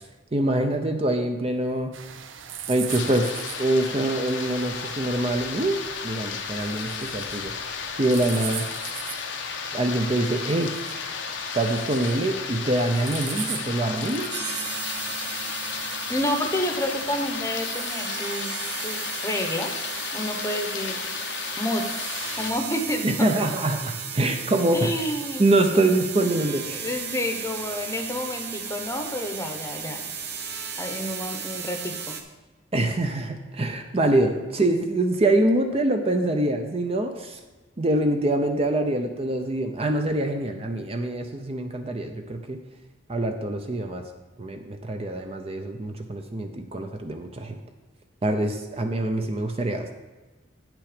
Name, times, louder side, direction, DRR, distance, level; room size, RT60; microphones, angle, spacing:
voice 1, 0.3-1.9 2.7-3.3 3.6-7.5 8.0-8.7 9.7-10.7 11.5-14.3 23.0-24.9 25.4-26.9 32.7-37.4 37.8-42.6 43.1-44.1 44.4-47.6 48.2-49.9, right 1 dB, 30° right, 5 dB, 0.6 m, -25 dB
sound 1, 1.9-17.6, right 9 dB, 80° right, 0.6 m, -40 dB
sound 2, 2.9-22.5, left 6 dB, 65° left, 0.7 m, -34 dB
sound 3, 14.3-32.2, right 6 dB, 60° right, 0.9 m, -35 dB
voice 2, 16.1-19.7 20.1-21.0 21.6-22.0 22.4-23.3 24.7-25.5 26.7-30.1 30.8-32.2, left 1 dB, 15° left, 4 dB, 0.8 m, -29 dB
8.9 x 6.1 x 5.0 m, 1.2 s
head